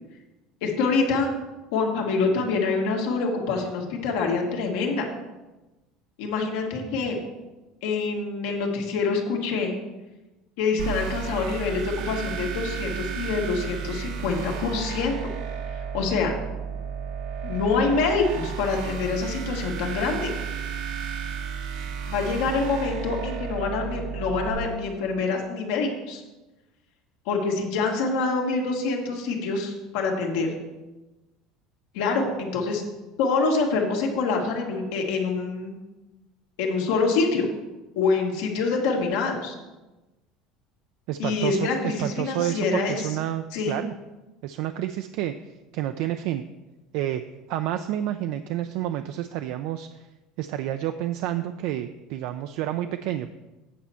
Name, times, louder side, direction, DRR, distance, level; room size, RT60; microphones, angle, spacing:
voice 1, 0.6-1.3 1.7-5.0 6.2-7.2 7.8-9.7 10.6-15.3 15.9-16.3 17.4-20.3 22.1-26.2 27.3-30.5 31.9-32.8 33.2-35.8 36.6-37.5 38.0-39.6 41.2-43.1 43.5-43.8, left 4 dB, 85° left, 1 dB, 1.7 m, -26 dB
sound 1, 10.8-24.5, right 7 dB, 85° right, 1.4 m, -33 dB
voice 2, 41.1-43.9 44.4-45.3 45.7-46.4 46.9-47.2 47.5-50.1 50.4-53.3, right 12 dB, 70° right, 8 dB, 0.3 m, -29 dB
8.5 x 4.4 x 6.9 m, 1.1 s
cardioid pair, 140°, 0 cm